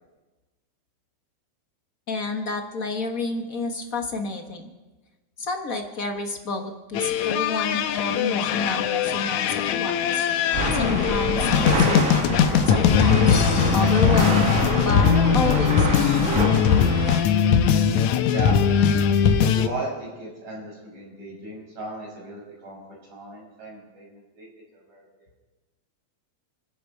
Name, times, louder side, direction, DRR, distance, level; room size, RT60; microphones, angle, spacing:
voice 1, 2.1-4.7 5.4-10.2 10.7-16.5, left 3 dB, 45° left, 4 dB, 1.1 m, -30 dB
sound 1, 6.9-19.7, left 8 dB, 80° left, 2.1 m, -21 dB
sound 2, 10.5-17.2, right 1 dB, 35° right, 1.4 m, -26 dB
voice 2, 18.1-18.8 19.4-22.8 23.1-24.5 24.7-25.1, right 1 dB, 70° right, -4 dB, 7.6 m, -35 dB
29.5 x 10.5 x 4.6 m, 1.2 s
omnidirectional pair, 3.4 m